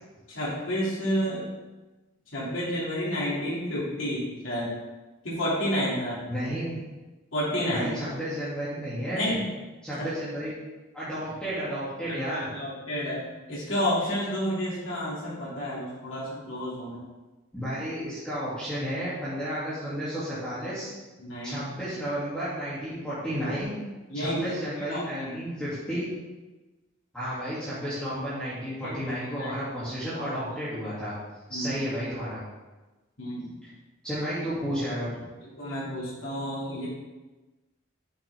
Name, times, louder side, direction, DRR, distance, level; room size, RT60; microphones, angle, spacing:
voice 1, 0.3-1.5 2.3-4.7 5.2-6.2 7.3-7.9 9.1-9.5 10.0-10.1 12.1-17.0 21.2-21.6 24.1-25.4 28.8-29.6 30.1-30.2 31.5-31.8 33.2-33.6 35.6-36.9, equal, 75° left, -7 dB, 2.9 m, -30 dB
voice 2, 6.3-6.8 7.7-9.4 9.8-10.5 10.9-12.5 17.5-20.9 21.4-23.7 24.1-26.1 27.1-31.1 31.5-32.4 34.0-35.3, equal, 5° left, -13 dB, 2.7 m, -32 dB
8.9 x 7.5 x 3.6 m, 1.1 s
head